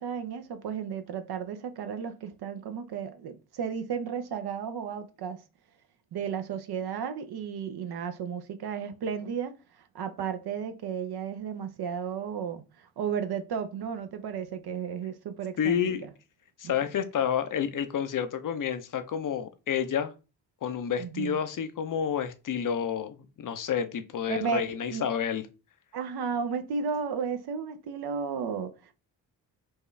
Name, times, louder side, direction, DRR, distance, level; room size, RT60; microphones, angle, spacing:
voice 1, 0.0-5.4 6.1-9.5 9.9-15.8 16.6-16.7 21.0-21.4 24.3-24.6 24.9-25.0 25.9-28.7, right 6 dB, 55° right, 0.7 m, -33 dB
voice 2, 15.6-16.1 16.6-20.1 20.6-25.5, left 8 dB, 45° left, 0.6 m, -29 dB
4.5 x 2.3 x 3.2 m
hypercardioid pair, 45°, 47 cm